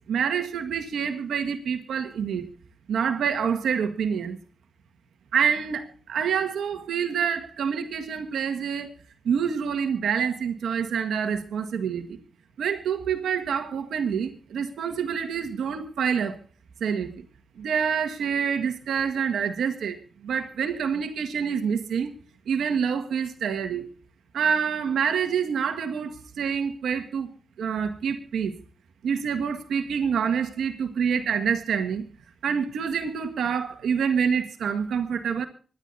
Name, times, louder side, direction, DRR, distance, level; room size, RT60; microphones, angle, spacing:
voice 1, 0.1-2.5 2.9-4.4 5.3-8.9 9.2-12.2 12.6-16.4 16.8-17.2 17.6-22.1 22.5-23.9 24.3-27.3 27.6-28.5 29.0-32.0 32.4-35.5, right 7 dB, 90° right, 1.8 m, -27 dB
25.0 x 11.5 x 2.8 m
cardioid pair, 45°, 0 cm